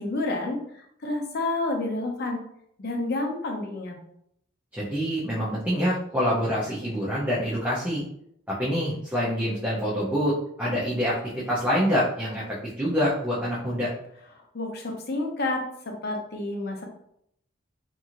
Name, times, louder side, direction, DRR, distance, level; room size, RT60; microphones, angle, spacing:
voice 1, 0.0-2.4 2.8-4.0 14.4-16.8, left 2 dB, 55° left, 2 dB, 0.6 m, -30 dB
voice 2, 4.7-8.0 8.5-13.9, equal, 10° right, -8 dB, 0.6 m, -26 dB
2.9 x 2.6 x 2.5 m, 0.71 s
head